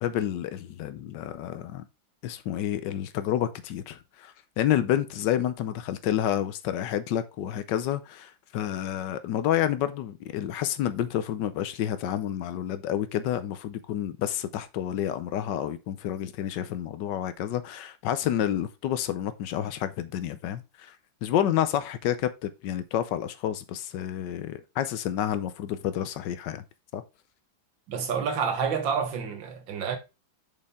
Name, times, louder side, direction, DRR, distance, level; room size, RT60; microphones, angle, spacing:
voice 1, 0.0-1.9 2.2-21.0 21.2-26.6 26.9-27.0, left 11 dB, 70° left, 1.2 m, -29 dB
voice 2, 27.9-30.0, right 6 dB, 70° right, 1.9 m, -28 dB
6.7 x 5.3 x 3.6 m
omnidirectional pair, 2.2 m